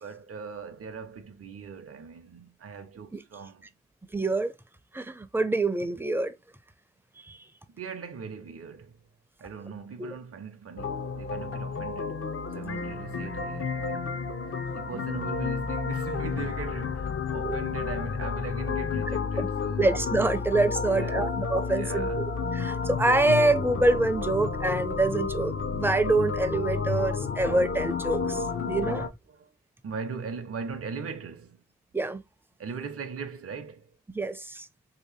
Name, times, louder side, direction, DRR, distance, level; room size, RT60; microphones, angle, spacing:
voice 1, 0.0-3.7 7.7-9.0 9.4-12.2 12.5-14.3 14.7-19.8 20.9-21.3 21.7-22.2 28.5-29.5 29.8-31.6 32.6-33.9, right 5 dB, 50° right, 0.6 m, -40 dB
voice 2, 4.1-4.5 4.9-6.4 7.2-7.4 10.0-10.1 14.9-15.0 17.3-17.6 19.4-19.5 19.8-29.1 31.9-32.2 34.1-34.7, right 2 dB, 10° right, 0.5 m, -26 dB
sound 1, 10.8-29.1, left 5 dB, 45° left, 0.5 m, -31 dB
3.2 x 2.8 x 3.1 m
cardioid pair, 65°, 30 cm